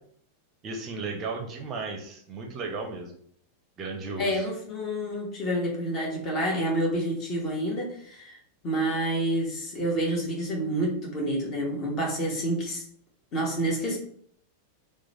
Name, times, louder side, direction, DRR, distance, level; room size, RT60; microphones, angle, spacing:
voice 1, 0.6-3.1 3.8-4.5, right 3 dB, 30° right, 2 dB, 0.5 m, -35 dB
voice 2, 4.2-8.4 8.6-12.8 13.3-14.0, right 1 dB, 35° left, -1 dB, 1.0 m, -28 dB
3.0 x 2.2 x 4.0 m, 0.62 s
figure-of-eight pair, 90°, 0 cm